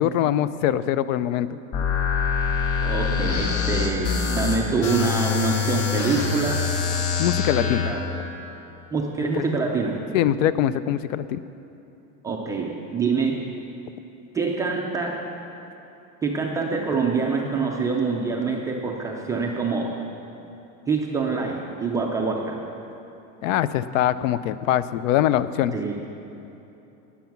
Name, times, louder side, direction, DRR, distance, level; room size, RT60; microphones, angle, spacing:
voice 1, 0.0-1.6 7.2-7.9 9.3-9.5 10.1-11.4 23.4-25.8, left 11 dB, 70° left, 15 dB, 0.6 m, -23 dB
sound 1, 1.7-7.9, left 6 dB, 35° left, 1.6 m, -24 dB
voice 2, 2.8-6.7 7.5-8.2 8.9-10.0 12.2-13.4 14.3-15.2 16.2-19.9 20.9-22.6 25.7-26.0, right 4 dB, 10° right, -1 dB, 0.3 m, -25 dB
18.5 x 7.1 x 5.9 m, 2.9 s
supercardioid pair, 155°, 42 cm